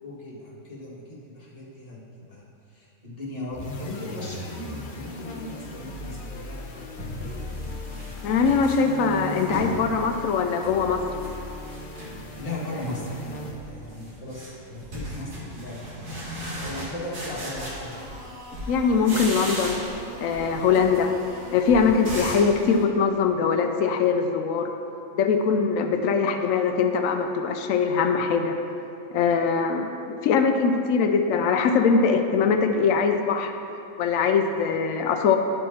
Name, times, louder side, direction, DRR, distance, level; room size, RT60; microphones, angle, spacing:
voice 1, 0.0-2.0 2.3-2.5 2.7-7.9 12.4-18.1, left 1 dB, 30° left, -7 dB, 1.6 m, -38 dB
sound 1, 3.5-13.9, left 1 dB, 45° left, 0.8 m, -38 dB
sound 2, 6.3-6.4 7.0-9.8 10.2-11.3 11.6-12.5 12.8-13.2 13.5-18.2 18.5-20.0 20.3-22.5, equal, 90° right, 2.3 m, -36 dB
voice 2, 8.2-11.0 18.7-19.8 20.2-21.1 21.5-24.7 25.2-28.6 29.1-33.5 34.0-35.4, left 5 dB, 90° left, 6 dB, 1.0 m, -22 dB
sound 3, 17.3-22.9, right 1 dB, 40° right, 1.3 m, -42 dB
11.0 x 4.6 x 4.2 m, 2.7 s
omnidirectional pair, 1.4 m